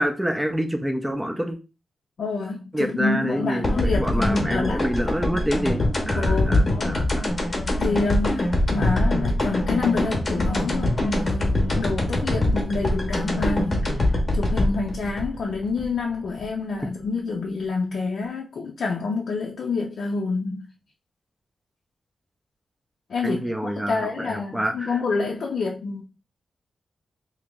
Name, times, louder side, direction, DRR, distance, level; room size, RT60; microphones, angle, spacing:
voice 1, 0.0-1.6 2.7-7.4 23.2-25.0, equal, 5° right, 0.5 m, -27 dB
voice 2, 2.2-4.8 6.2-7.0 7.4-7.5 7.8-20.6 23.1-26.0, left 4 dB, 70° left, 0.5 m, -28 dB
sound 1, 3.6-16.4, left 1 dB, 30° left, 0.9 m, -24 dB
3.1 x 2.8 x 3.6 m
wide cardioid pair, 170°, 0 cm